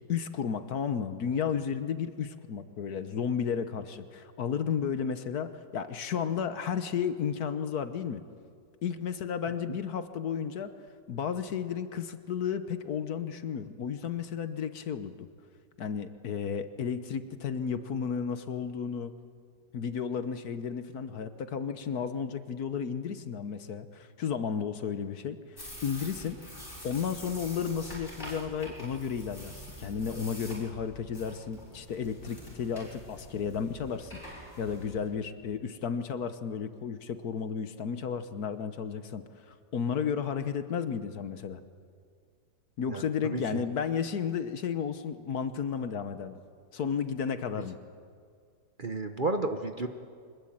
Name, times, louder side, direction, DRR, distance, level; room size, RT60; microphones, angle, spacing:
voice 1, 0.1-8.2 8.8-10.7 11.1-15.2 15.8-19.1 19.7-25.4 25.8-26.4 26.8-39.2 39.7-41.6 42.8-46.4 46.7-47.8, left 7 dB, 65° left, 10 dB, 1.5 m, -33 dB
sound 1, 25.6-35.1, equal, 30° left, 6.8 m, -46 dB
voice 2, 42.9-43.6 48.8-49.9, right 2 dB, 35° right, 6 dB, 0.9 m, -32 dB
24.5 x 20.5 x 8.8 m, 2.1 s
omnidirectional pair, 1.8 m